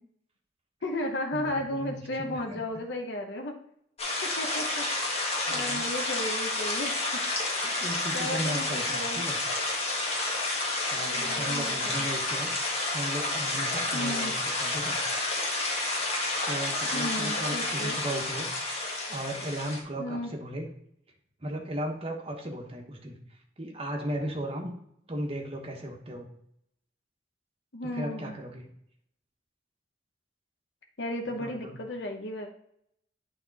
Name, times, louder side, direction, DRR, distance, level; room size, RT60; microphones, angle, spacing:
voice 1, 0.8-3.5 4.2-4.9 5.5-7.2 8.1-9.3 11.0-12.1 13.9-14.3 16.9-18.0 20.0-20.3 27.7-28.3 31.0-32.5, left 1 dB, 80° left, 2 dB, 0.9 m, -34 dB
voice 2, 1.3-2.6 5.5-5.8 7.6-9.4 10.9-15.0 16.5-18.5 19.1-20.7 21.4-23.2 23.6-24.7 25.1-26.3 27.9-28.7 31.3-31.8, right 1 dB, 35° right, 1 dB, 1.2 m, -36 dB
sound 1, 4.0-19.8, left 2 dB, 35° left, 1.4 m, -30 dB
8.7 x 3.6 x 4.1 m, 0.72 s
head